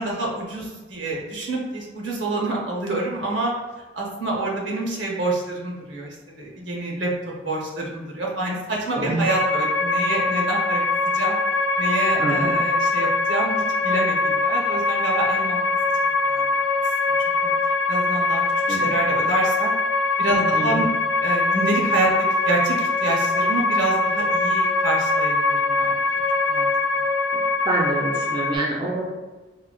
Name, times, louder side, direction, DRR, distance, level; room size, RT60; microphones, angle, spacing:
voice 1, 0.0-3.5 3.9-7.1 7.4-11.4 11.8-15.6 16.2-16.6 17.4-17.5 17.9-18.4 18.7-19.7 20.2-20.9 21.2-22.1 22.4-26.0 26.5-26.7, right 2 dB, 80° right, -2 dB, 0.7 m, -27 dB
voice 2, 8.9-9.2 12.2-12.5 18.7-18.9 20.3-20.9 27.3-29.2, right 2 dB, 25° right, -2 dB, 0.4 m, -26 dB
sound 1, 9.3-28.6, left 3 dB, 70° left, 0.5 m, -22 dB
3.8 x 2.1 x 2.3 m, 1.2 s
head